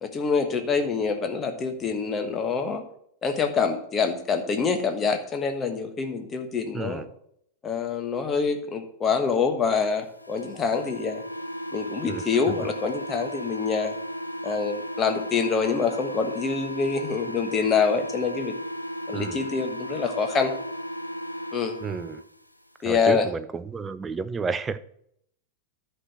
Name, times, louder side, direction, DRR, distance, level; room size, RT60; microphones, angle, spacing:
voice 1, 0.0-2.8 3.2-7.0 7.6-11.2 11.7-13.9 14.4-18.5 19.1-20.5 21.5-21.8 22.8-23.3, left 5 dB, 25° left, 1.3 m, -26 dB
voice 2, 6.7-7.1 12.1-12.4 19.1-19.5 21.8-22.2 22.8-24.8, right 5 dB, 15° right, 0.5 m, -31 dB
sound 1, 10.2-22.2, equal, 90° left, 0.6 m, -35 dB
11.0 x 4.5 x 6.6 m
figure-of-eight pair, 90°, 0 cm